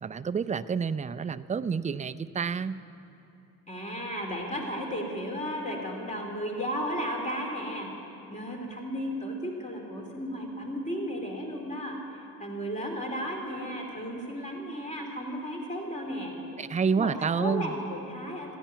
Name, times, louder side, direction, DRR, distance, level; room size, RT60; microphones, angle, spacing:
voice 1, 0.0-2.8 16.6-17.7, right 6 dB, 20° right, 12 dB, 0.4 m, -29 dB
voice 2, 3.7-16.3 17.0-18.6, equal, 20° left, 1 dB, 2.6 m, -34 dB
15.5 x 10.0 x 9.2 m, 2.8 s
cardioid pair, 115°, 35 cm